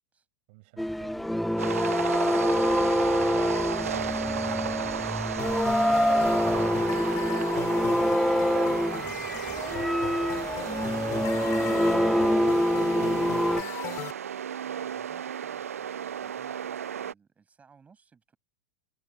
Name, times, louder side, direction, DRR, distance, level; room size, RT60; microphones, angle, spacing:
voice 1, 0.5-5.0 12.8-14.0, right 27 dB, 50° right, 5.1 m, -54 dB
sound 1, 0.8-13.6, equal, ahead, 0.4 m, -25 dB
sound 2, 1.6-17.1, right 8 dB, 70° right, 0.6 m, -34 dB
sound 3, 5.4-14.1, left 17 dB, 40° left, 2.5 m, -39 dB
voice 2, 14.6-18.4, right 5 dB, 15° right, 7.7 m, -59 dB
figure-of-eight pair, 90°, 8 cm